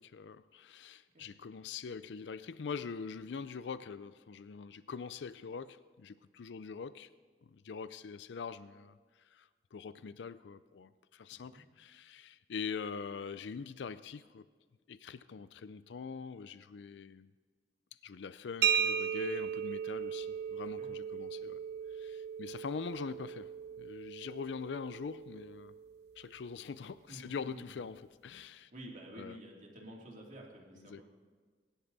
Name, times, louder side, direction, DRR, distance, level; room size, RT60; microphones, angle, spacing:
voice 1, 0.0-7.1 7.4-9.0 9.3-14.5 14.9-17.3 18.0-21.6 21.9-23.5 23.8-25.7 26.2-28.7 29.1-29.4 30.9-31.0, left 5 dB, 85° left, 0.4 m, -43 dB
voice 2, 11.3-11.6 20.8-20.9 21.4-21.5 27.1-27.7 28.7-31.0, right 1 dB, 45° right, 2.8 m, -50 dB
sound 1, 18.6-26.2, right 8 dB, 65° right, 0.7 m, -37 dB
22.5 x 11.0 x 4.0 m
head